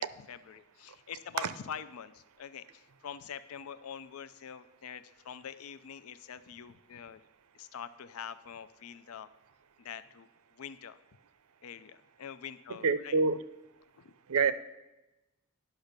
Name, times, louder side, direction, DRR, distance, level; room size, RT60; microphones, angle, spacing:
voice 1, 0.0-7.2 7.5-9.3 9.8-11.0 11.6-13.2 14.0-14.1, left 8 dB, 75° left, 13 dB, 0.4 m, -45 dB
voice 2, 12.8-13.4 14.3-14.5, right 4 dB, 85° right, 13 dB, 0.6 m, -26 dB
10.5 x 6.0 x 6.6 m, 1.0 s
head